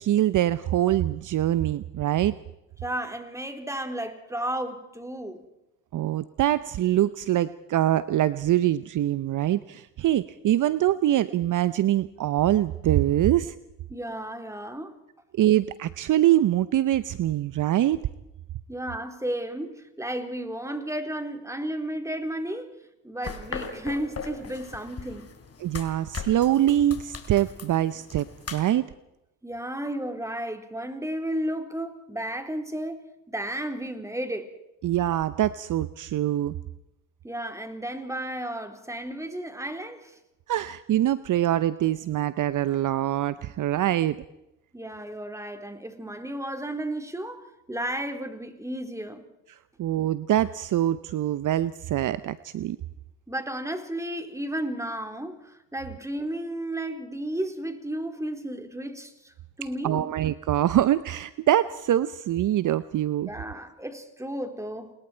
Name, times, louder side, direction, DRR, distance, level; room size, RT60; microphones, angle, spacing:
voice 1, 0.0-2.4 5.9-13.5 15.4-18.0 25.6-28.3 28.5-28.9 34.8-36.5 40.5-44.2 49.8-52.8 59.8-63.3, right 12 dB, 55° right, 0.8 m, -24 dB
voice 2, 2.8-5.4 13.9-15.0 18.7-22.7 23.0-25.3 29.4-34.5 37.2-40.2 44.7-49.3 53.3-60.1 63.3-64.9, right 1 dB, 10° right, 4.0 m, -33 dB
sound 1, 23.2-28.7, left 5 dB, 40° left, 4.0 m, -39 dB
30.0 x 21.5 x 4.6 m
hypercardioid pair, 60°, 37 cm